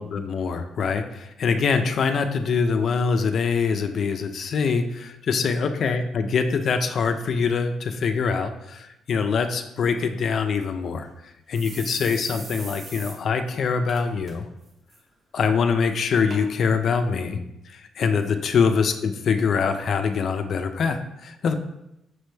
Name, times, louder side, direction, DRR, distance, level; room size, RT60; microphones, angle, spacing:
voice 1, 0.0-14.5 15.3-17.4 17.7-21.5, left 5 dB, 60° left, 7 dB, 0.3 m, -24 dB
sound 1, 10.6-10.7 11.0-11.1 11.5-13.2 13.5-13.6 13.9-14.3 14.7-15.0 15.7-15.8 16.3-16.4 17.1-17.2, right 2 dB, 45° right, 0.9 m, -40 dB
5.9 x 2.1 x 3.2 m, 0.86 s
cardioid pair, 90°, 0 cm